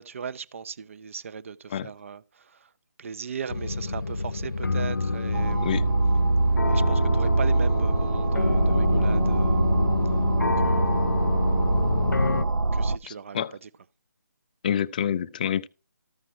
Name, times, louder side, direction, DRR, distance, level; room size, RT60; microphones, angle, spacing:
voice 1, 0.0-2.7 3.0-5.8 6.6-9.6 10.6-11.1 12.7-13.7, right 6 dB, 45° right, 0.7 m, -38 dB
sound 1, 3.5-12.5, left 3 dB, 85° left, 0.7 m, -27 dB
sound 2, 5.3-13.0, right 3 dB, 85° right, 0.5 m, -24 dB
voice 2, 13.1-13.5 14.6-15.7, left 9 dB, 25° left, 0.4 m, -27 dB
13.5 x 6.1 x 4.2 m
figure-of-eight pair, 155°, 10 cm